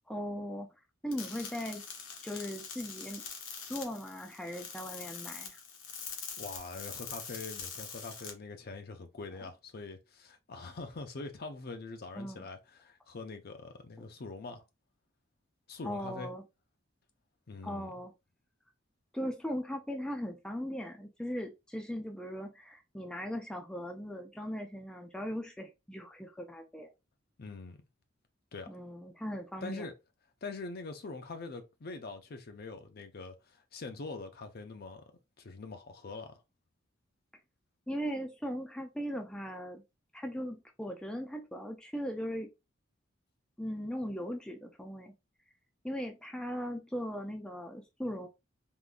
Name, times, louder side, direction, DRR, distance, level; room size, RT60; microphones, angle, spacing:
voice 1, 0.1-0.7 1.0-1.8 2.2-3.2 3.6-5.6 12.1-12.5 15.8-16.4 17.6-18.1 19.1-26.9 28.7-29.9 37.9-39.8 40.1-42.5 43.6-45.1 45.8-48.3, equal, 5° left, 0.4 m, -38 dB
sound 1, 1.1-8.3, left 6 dB, 80° left, 1.0 m, -44 dB
voice 2, 6.4-14.6 15.7-16.3 17.5-17.9 27.4-27.8 28.5-28.7 29.6-29.9 30.4-35.1 35.4-36.4, left 3 dB, 50° left, 0.6 m, -43 dB
3.7 x 2.5 x 2.4 m
head